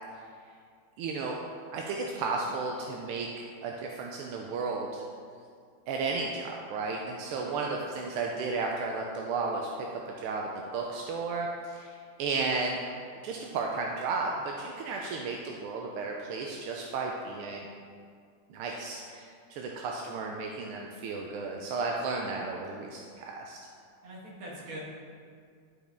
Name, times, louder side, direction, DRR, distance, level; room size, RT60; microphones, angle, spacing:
voice 1, 1.0-1.4 1.7-5.0 5.9-9.9 10.2-12.8 13.2-17.7 18.5-23.6, right 4 dB, 90° right, 0 dB, 1.5 m, -33 dB
voice 2, 24.0-24.8, right 1 dB, 70° right, -4 dB, 2.3 m, -43 dB
12.0 x 5.1 x 3.4 m, 2.2 s
omnidirectional pair, 2.4 m